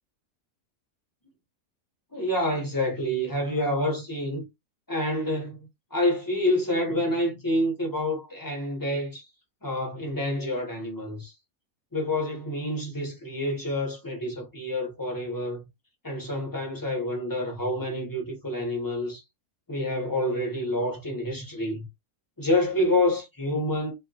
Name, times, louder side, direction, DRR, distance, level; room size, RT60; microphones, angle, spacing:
voice 1, 2.1-4.5 4.9-9.3 9.6-11.3 11.9-15.6 16.0-19.2 19.7-21.9 22.4-23.9, left 1 dB, 20° left, 0.6 m, -28 dB
2.9 x 2.5 x 2.6 m
omnidirectional pair, 1.5 m